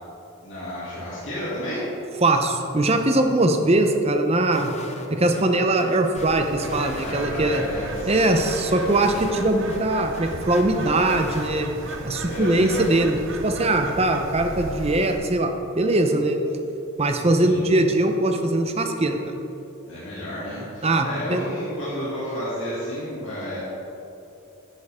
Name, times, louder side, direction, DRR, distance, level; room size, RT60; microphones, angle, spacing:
voice 1, 0.4-1.9 7.0-8.8 12.2-12.7 17.4-17.7 19.9-23.6, equal, 60° left, -10 dB, 2.5 m, -32 dB
voice 2, 2.2-4.7 5.1-7.6 8.1-11.7 12.0-16.4 17.0-19.3 20.8-21.4, right 2 dB, 30° right, 5 dB, 0.7 m, -21 dB
sound 1, 4.5-5.4 5.8-7.6 8.0-9.4 9.7-9.8 10.1-12.0 12.3-13.1, left 2 dB, 30° left, 0.8 m, -39 dB
Bird, 6.2-15.2, right 2 dB, 60° right, 0.8 m, -36 dB
11.0 x 9.3 x 3.6 m, 3.0 s
head